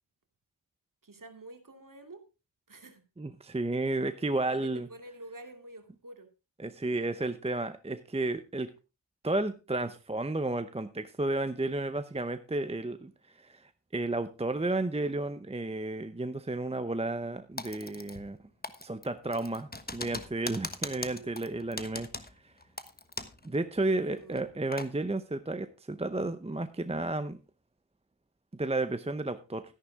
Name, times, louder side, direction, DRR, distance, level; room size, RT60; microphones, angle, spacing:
voice 1, 1.0-2.2 2.7-3.0 4.4-6.3 20.9-21.4 23.9-24.5, right 2 dB, 45° right, 6 dB, 2.5 m, -48 dB
voice 2, 3.2-4.9 6.6-8.7 9.2-18.4 18.8-22.1 22.4-22.5 23.4-27.4 28.5-29.6, right 2 dB, 15° right, 10 dB, 0.7 m, -32 dB
Typing, 17.6-18.4 18.6-23.5 23.7-23.8 24.3-24.9, left 2 dB, 20° left, 1.2 m, -40 dB
13.0 x 11.0 x 3.6 m, 0.29 s
wide cardioid pair, 95°, 46 cm